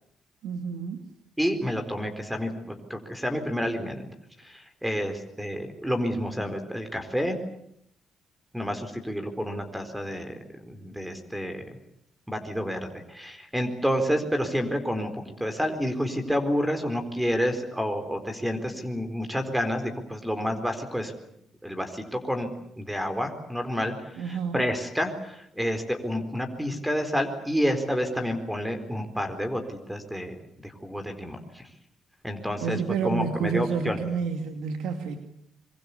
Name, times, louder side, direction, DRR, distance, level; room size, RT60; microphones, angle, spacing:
voice 1, 0.4-1.0 24.2-24.6 32.6-35.2, right 6 dB, 85° right, 6 dB, 2.6 m, -29 dB
voice 2, 1.4-4.1 4.4-7.4 8.5-10.3 10.6-11.7 12.3-15.1 15.4-21.1 21.6-22.5 22.8-30.4 30.6-31.6 32.2-34.0, equal, 5° right, 8 dB, 4.2 m, -29 dB
25.0 x 24.0 x 8.5 m, 0.73 s
cardioid pair, 90°, 0 cm